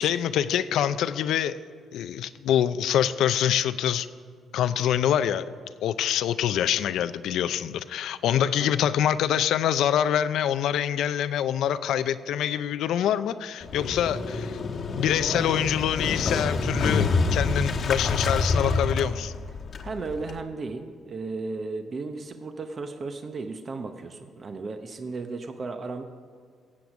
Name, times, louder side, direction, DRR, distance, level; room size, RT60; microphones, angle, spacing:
voice 1, 0.0-1.6 1.9-4.1 4.5-5.4 5.8-14.6 15.0-19.3, left 10 dB, 80° left, 12 dB, 0.5 m, -25 dB
Motorcycle, 13.6-20.4, left 3 dB, 55° left, 1.2 m, -27 dB
voice 2, 19.8-26.0, right 3 dB, 40° right, 7 dB, 0.9 m, -35 dB
16.0 x 8.0 x 6.1 m, 2.1 s
cardioid pair, 90°, 0 cm